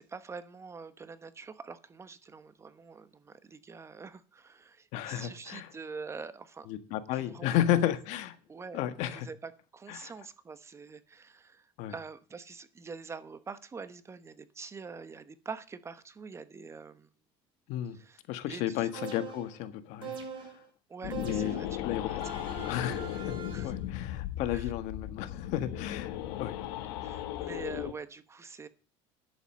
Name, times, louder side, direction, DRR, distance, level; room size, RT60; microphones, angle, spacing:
voice 1, 0.0-6.7 7.1-7.6 8.5-8.8 9.1-17.1 17.9-18.2 18.5-18.9 20.9-21.7 22.1-22.9 23.5-23.7 24.5-24.7 27.0-28.7, right 5 dB, 20° right, 1.0 m, -45 dB
voice 2, 4.9-5.7 6.7-8.3 8.7-9.3 9.9-10.1 11.8-11.9 17.7-18.0 18.3-20.6 21.2-21.5 21.8-22.2 22.6-23.4 23.6-26.6, left 12 dB, 65° left, 1.7 m, -33 dB
sound 1, 18.9-19.6 20.0-20.6 21.1-21.7 22.2-23.8, right 6 dB, 35° right, 5.7 m, -42 dB
sound 2, 21.0-27.9, left 12 dB, 80° left, 1.4 m, -36 dB
11.0 x 8.1 x 6.5 m
supercardioid pair, 120°, 13 cm